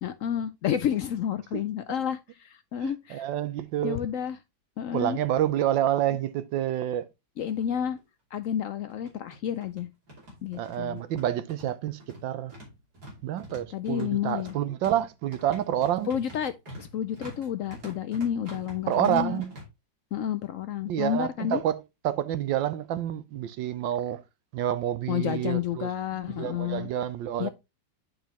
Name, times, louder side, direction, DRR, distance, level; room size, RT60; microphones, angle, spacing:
voice 1, 0.0-3.3 3.8-4.4 4.8-5.2 7.4-8.0 8.3-9.9 10.4-11.0 13.7-14.5 16.1-16.5 16.8-19.4 20.1-21.6 25.1-26.9 27.4-27.5, left 9 dB, 80° left, 0.7 m, -30 dB
voice 2, 2.8-4.0 4.9-7.1 10.6-12.5 13.2-16.1 18.9-19.5 20.9-24.2 24.5-25.9 26.3-27.5, right 11 dB, 90° right, 1.4 m, -28 dB
sound 1, 7.6-7.7 8.0-8.1 8.9-19.6, equal, 55° right, 3.5 m, -46 dB
8.8 x 5.3 x 2.8 m
omnidirectional pair, 2.0 m